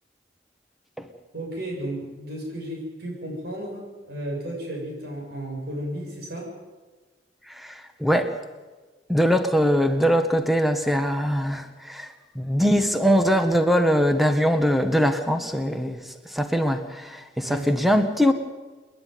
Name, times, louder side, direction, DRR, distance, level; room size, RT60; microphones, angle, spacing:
voice 1, 1.3-6.5 17.4-17.7, right 1 dB, 60° right, -1 dB, 7.7 m, -33 dB
voice 2, 7.5-8.3 9.1-12.1 12.3-16.0 16.3-18.3, equal, ahead, 7 dB, 1.5 m, -22 dB
29.0 x 11.5 x 9.4 m, 1.3 s
head